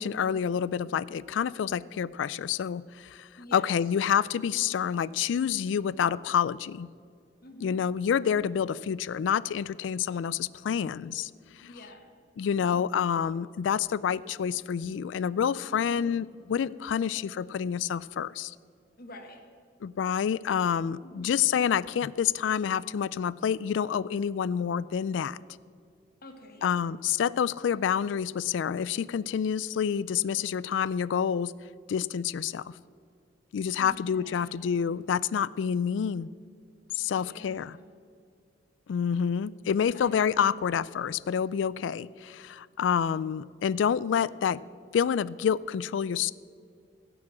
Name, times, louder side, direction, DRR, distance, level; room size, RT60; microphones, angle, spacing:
voice 1, 0.0-6.9 7.6-11.3 11.6-11.8 12.4-18.5 19.8-25.4 26.6-31.5 31.9-32.7 33.5-36.3 37.0-37.8 38.9-44.6 44.9-46.3, left 8 dB, 75° left, 19 dB, 0.3 m, -28 dB
voice 2, 3.4-3.7 7.4-7.8 11.7-12.1 15.7-16.1 19.0-19.4 21.0-21.4 26.2-27.0 33.8-34.8 37.0-37.9 39.9-40.8, left 1 dB, 55° left, 4 dB, 1.5 m, -49 dB
16.0 x 6.0 x 7.6 m, 2.3 s
head